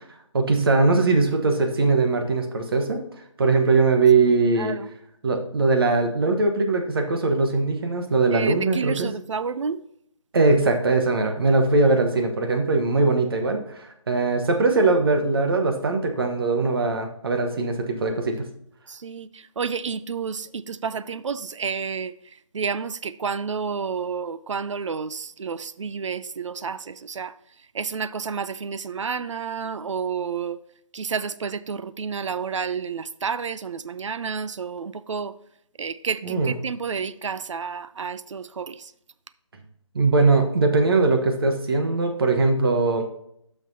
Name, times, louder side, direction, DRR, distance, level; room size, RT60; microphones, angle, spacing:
voice 1, 0.3-3.0 3.4-4.7 5.2-9.1 10.3-18.4 36.2-36.5 39.9-43.0, right 3 dB, 45° right, 1.2 m, -21 dB
voice 2, 8.3-9.8 19.0-19.3 19.6-22.1 22.5-27.3 27.7-30.6 30.9-35.3 35.8-38.8, right 6 dB, 65° right, 0.5 m, -30 dB
11.5 x 5.9 x 2.7 m
figure-of-eight pair, 160°, 17 cm